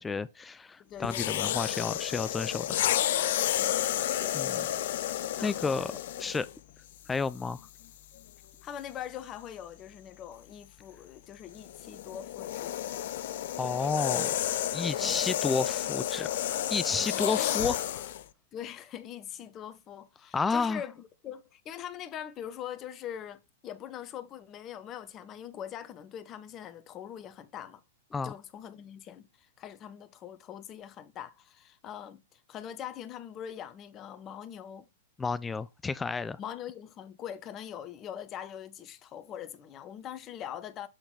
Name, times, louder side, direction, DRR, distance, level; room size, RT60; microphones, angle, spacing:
voice 1, 0.0-2.7 4.3-4.6 5.4-5.9 6.2-6.5 7.1-7.6 13.6-14.3 14.7-16.3 16.7-18.1 20.3-20.8 28.1-28.3 35.2-36.4, left 4 dB, 15° left, 0.4 m, -31 dB
voice 2, 0.8-1.7 3.6-4.4 5.4-5.9 8.6-12.8 15.0-15.3 17.0-17.2 18.5-27.8 28.2-34.9 36.4-40.9, left 9 dB, 30° left, 1.0 m, -43 dB
sound 1, 1.0-6.6 7.4-7.6 11.5-18.2, left 12 dB, 60° left, 0.6 m, -31 dB
8.0 x 4.0 x 3.9 m
hypercardioid pair, 115°, 0 cm